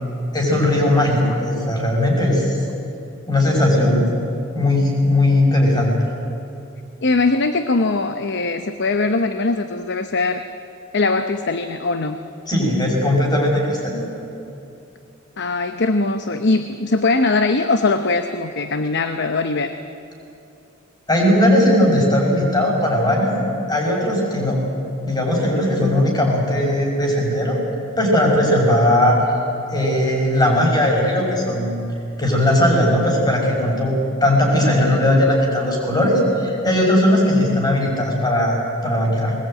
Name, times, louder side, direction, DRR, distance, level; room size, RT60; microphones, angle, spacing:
voice 1, 0.3-2.6 3.3-4.1 4.5-5.9 12.5-14.0 21.1-23.4 23.7-24.6 25.0-27.6 28.0-29.4 29.7-31.8 32.2-39.3, left 1 dB, 20° left, -1 dB, 6.0 m, -18 dB
voice 2, 7.0-10.4 10.9-12.2 15.4-19.7, left 3 dB, 60° left, 8 dB, 0.9 m, -21 dB
21.0 x 20.0 x 9.0 m, 2.8 s
head